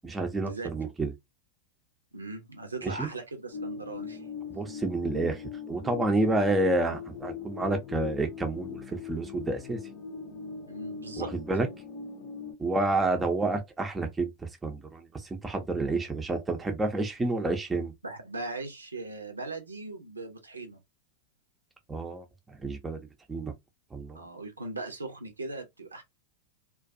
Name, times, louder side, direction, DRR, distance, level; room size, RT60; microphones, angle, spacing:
voice 1, 0.0-1.1 2.8-3.1 4.5-9.8 11.2-11.7 12.6-17.9 21.9-23.0 23.3-23.5 23.9-24.2, right 2 dB, 10° right, 0.5 m, -29 dB
voice 2, 2.1-4.3 10.7-11.3 18.0-20.8 24.1-26.0, right 3 dB, 80° right, 0.6 m, -39 dB
sound 1, 3.5-12.5, left 6 dB, 45° left, 0.6 m, -40 dB
2.3 x 2.2 x 2.5 m
figure-of-eight pair, 90°, 0 cm